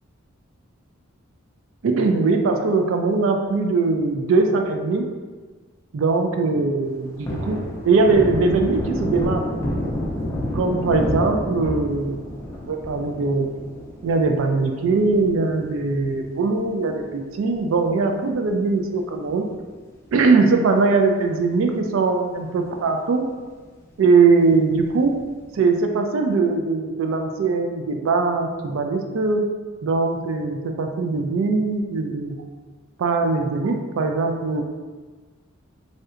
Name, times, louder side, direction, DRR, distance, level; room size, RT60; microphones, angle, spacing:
voice 1, 1.8-5.1 5.9-9.6 10.5-12.2 12.7-13.5 14.0-19.5 20.1-23.2 24.0-25.2 25.5-29.4 29.8-32.4 33.0-34.6, right 4 dB, 75° right, 4 dB, 0.4 m, -21 dB
Thunder, 6.8-17.6 17.9-18.0 18.4-19.9 20.2-20.3 20.7-21.5 21.9-22.0 22.3-22.4 24.8-25.3, left 1 dB, 15° left, 0.4 m, -30 dB
3.2 x 2.8 x 2.4 m, 1.4 s
head